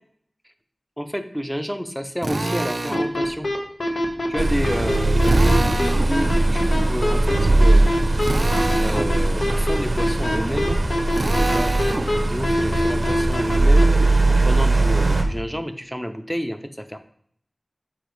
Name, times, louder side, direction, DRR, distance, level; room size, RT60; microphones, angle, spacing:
voice 1, 1.0-3.5 3.8-4.0 4.3-7.9 8.8-10.8 11.1-17.0, equal, ahead, 8 dB, 0.6 m, -30 dB
Drill, 2.2-3.1 5.2-6.1 8.2-9.1 11.1-12.1, right 2 dB, 55° right, 0.4 m, -26 dB
sound 1, 2.9-13.8, left 1 dB, 75° left, 0.9 m, -24 dB
sound 2, 4.4-15.2, right 2 dB, 80° right, 0.8 m, -20 dB
6.8 x 4.5 x 3.1 m, 0.64 s
wide cardioid pair, 65°, 0 cm